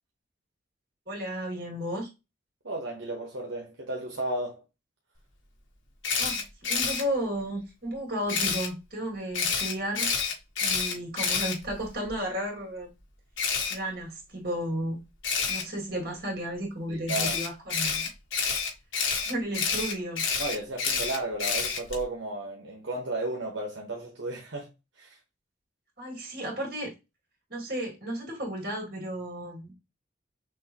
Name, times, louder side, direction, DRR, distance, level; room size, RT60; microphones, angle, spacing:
voice 1, 1.1-2.1 6.2-10.1 10.6-12.9 13.7-15.0 15.5-18.1 19.2-20.2 26.0-26.9 27.5-29.7, equal, 55° right, 2.4 m, -33 dB
voice 2, 2.6-4.6 16.9-17.4 20.4-24.7 25.0-25.2, right 2 dB, 75° right, 1.1 m, -34 dB
Camera, 6.0-7.0 8.3-8.7 9.3-12.1 13.4-13.7 15.2-15.6 17.1-22.0, left 5 dB, 90° left, 1.5 m, -28 dB
6.2 x 2.6 x 2.9 m
head